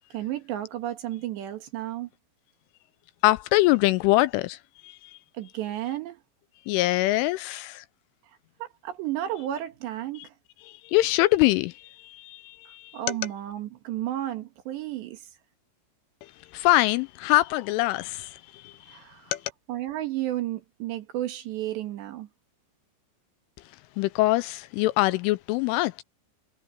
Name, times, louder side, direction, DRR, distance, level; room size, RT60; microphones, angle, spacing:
voice 1, 0.1-2.1 5.3-6.2 8.6-10.3 12.9-15.3 18.9-19.3 19.7-22.3, right 13 dB, 65° right, 3.6 m, -32 dB
voice 2, 3.2-4.6 4.8-5.2 6.7-7.9 10.7-13.0 16.5-19.0 19.3-19.4 24.0-26.0, left 18 dB, 85° left, 2.9 m, -24 dB
omnidirectional pair, 5.9 m